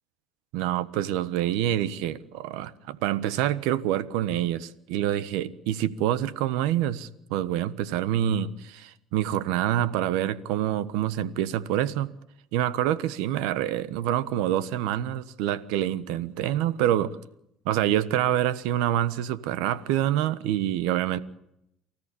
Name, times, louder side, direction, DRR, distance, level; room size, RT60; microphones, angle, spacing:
voice 1, 0.5-12.1 12.5-17.2 17.6-21.2, right 12 dB, 85° right, 1.3 m, -26 dB
29.0 x 14.0 x 8.5 m
supercardioid pair, 95°, 0 cm